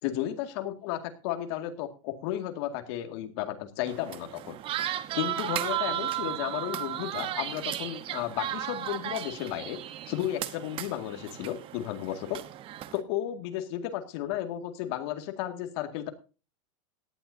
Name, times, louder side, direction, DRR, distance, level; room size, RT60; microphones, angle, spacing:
voice 1, 0.0-4.6 5.1-9.8 10.1-12.4 12.9-16.1, left 12 dB, 55° left, 7 dB, 2.1 m, -33 dB
sound 1, 3.9-13.0, right 12 dB, 30° right, 1.0 m, -35 dB
17.5 x 11.5 x 2.7 m, 0.33 s
supercardioid pair, 145°, 17 cm